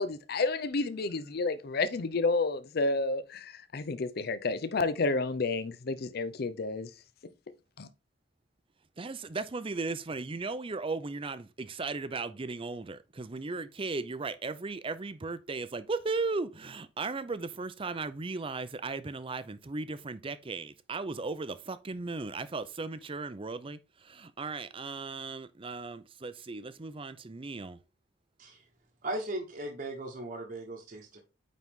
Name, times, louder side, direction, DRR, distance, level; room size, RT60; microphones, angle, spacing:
voice 1, 0.0-6.9 7.8-7.9, left 3 dB, 55° left, 0.5 m, -30 dB
voice 2, 9.0-27.8, right 3 dB, 30° right, 0.6 m, -36 dB
voice 3, 29.0-31.2, right 1 dB, 45° right, 1.2 m, -38 dB
9.2 x 4.0 x 3.6 m
head